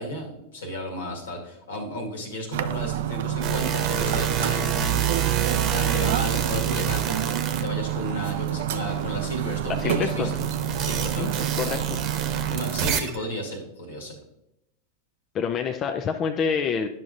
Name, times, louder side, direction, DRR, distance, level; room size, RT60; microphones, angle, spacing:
voice 1, 0.0-5.0 5.7-10.5 10.8-11.5 12.4-14.2, equal, 75° left, 1 dB, 1.8 m, -33 dB
sound 1, 2.5-13.0, right 12 dB, 65° right, 0.4 m, -28 dB
sound 2, 3.4-8.4 8.8-13.2, right 8 dB, 45° right, 0.9 m, -28 dB
voice 2, 9.7-10.4 11.2-11.3 11.6-12.0 15.3-16.9, left 6 dB, 35° left, 5 dB, 0.5 m, -27 dB
10.5 x 5.8 x 2.6 m, 0.84 s
hypercardioid pair, 95°, 0 cm